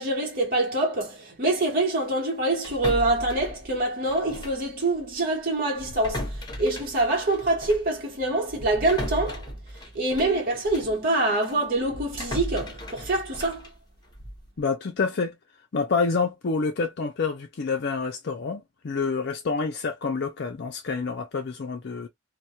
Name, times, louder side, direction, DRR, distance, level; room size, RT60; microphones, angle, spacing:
voice 1, 0.0-9.5 9.9-13.7, right 2 dB, 50° right, 1.1 m, -25 dB
sound 1, 2.6-4.7 5.0-5.2 5.7-11.0 11.4-14.5, equal, 20° left, 0.9 m, -36 dB
voice 2, 14.6-15.4 15.7-22.1, left 4 dB, 60° left, 0.5 m, -28 dB
2.2 x 2.2 x 2.7 m
head